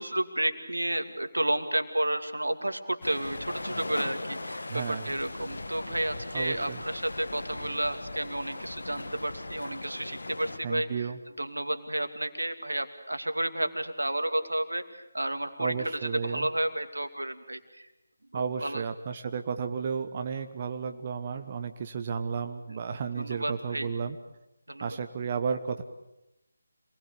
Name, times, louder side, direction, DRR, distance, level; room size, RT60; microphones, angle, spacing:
voice 1, 0.0-11.1 11.4-17.9 18.3-18.8 22.7-22.8 23.1-23.9 24.7-25.0, right 1 dB, 85° right, 8 dB, 2.5 m, -31 dB
sound 1, 3.0-10.6, left 2 dB, 70° left, 1.9 m, -39 dB
voice 2, 4.7-5.0 6.3-6.8 10.6-11.2 15.6-16.5 18.3-24.2 24.8-25.8, right 6 dB, 35° right, 6 dB, 1.1 m, -33 dB
27.0 x 20.5 x 8.4 m, 0.92 s
figure-of-eight pair, 155°, 0 cm